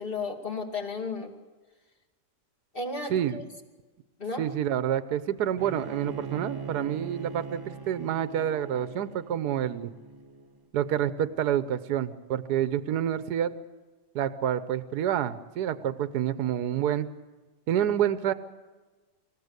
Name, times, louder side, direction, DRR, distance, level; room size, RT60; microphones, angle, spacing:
voice 1, 0.0-1.3 2.7-3.4 4.2-4.4, left 3 dB, 30° left, 2 dB, 2.6 m, -33 dB
voice 2, 3.1-3.4 4.4-9.9 10.7-13.5 14.1-17.1 17.7-18.3, right 10 dB, 70° right, 12 dB, 1.4 m, -28 dB
Bowed string instrument, 5.6-10.7, right 5 dB, 30° right, 0.4 m, -40 dB
26.0 x 15.5 x 8.2 m, 1.3 s
omnidirectional pair, 1.9 m